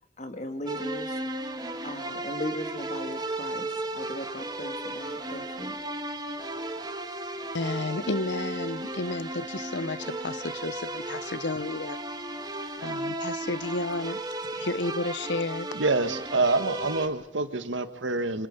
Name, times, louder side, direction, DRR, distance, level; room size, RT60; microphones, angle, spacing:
voice 1, 0.2-1.2 1.8-5.7, left 1 dB, 40° left, 3.1 m, -37 dB
sound 1, 0.7-17.1, right 2 dB, 20° right, 2.0 m, -35 dB
voice 2, 7.5-12.0 12.8-14.2 14.5-15.7, left 2 dB, 70° left, 0.9 m, -32 dB
voice 3, 15.7-18.5, right 3 dB, 85° right, 1.6 m, -26 dB
26.5 x 25.5 x 5.4 m
head